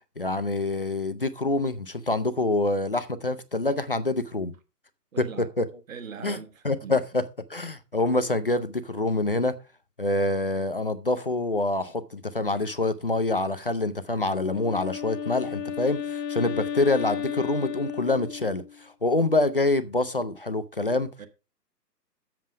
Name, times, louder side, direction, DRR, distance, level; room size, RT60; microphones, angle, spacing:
voice 1, 0.2-4.5 5.6-5.7 6.2-6.4 6.6-7.2 7.5-9.6 10.0-21.1, left 2 dB, 35° left, 0.4 m, -26 dB
voice 2, 5.1-5.5 5.9-7.0 14.6-14.7 21.2-21.3, right 6 dB, 55° right, 1.4 m, -40 dB
Wind instrument woodwind instrument, 14.3-18.8, left 8 dB, 75° left, 0.9 m, -33 dB
7.6 x 7.1 x 4.9 m
hypercardioid pair, 150°, 49 cm